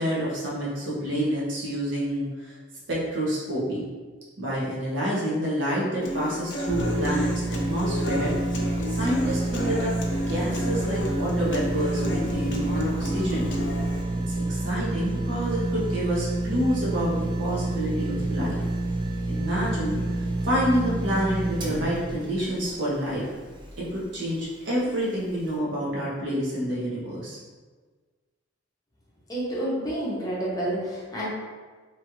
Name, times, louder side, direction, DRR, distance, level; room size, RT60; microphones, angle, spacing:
voice 1, 0.0-2.6 2.9-3.8 4.4-8.3 8.9-9.9 10.3-13.5 14.3-18.6 19.3-23.3 23.8-27.4, equal, 70° right, -6 dB, 0.9 m, -28 dB
Human voice / Acoustic guitar, 6.0-14.0, left 1 dB, 65° left, 0.5 m, -32 dB
sound 1, 6.7-23.9 24.3-24.4, right 2 dB, 25° right, 0.4 m, -29 dB
voice 2, 29.3-31.3, right 1 dB, 20° left, -6 dB, 0.7 m, -29 dB
3.0 x 2.4 x 2.9 m, 1.4 s
head